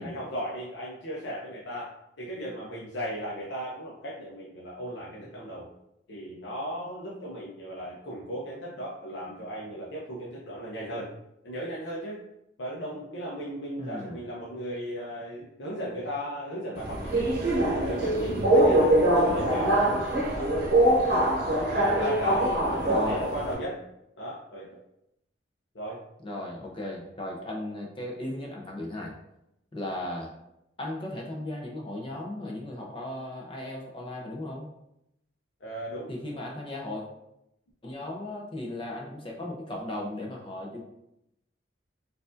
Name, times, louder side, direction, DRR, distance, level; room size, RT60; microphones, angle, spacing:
voice 1, 0.0-5.7 6.1-11.1 11.4-12.2 12.6-17.3 17.7-19.8 20.3-20.5 21.5-23.8 24.2-24.8 25.7-26.0 35.6-36.1, equal, 70° left, -5 dB, 0.7 m, -36 dB
voice 2, 13.8-14.2 19.3-19.5 22.9-23.2 26.2-29.1 29.7-30.3 30.8-34.7 36.1-37.0 37.8-40.8, left 1 dB, 25° left, -1 dB, 0.6 m, -36 dB
Subway metro underground, 16.7-23.5, right 1 dB, 55° right, 0.9 m, -23 dB
4.5 x 2.6 x 2.5 m, 0.82 s
head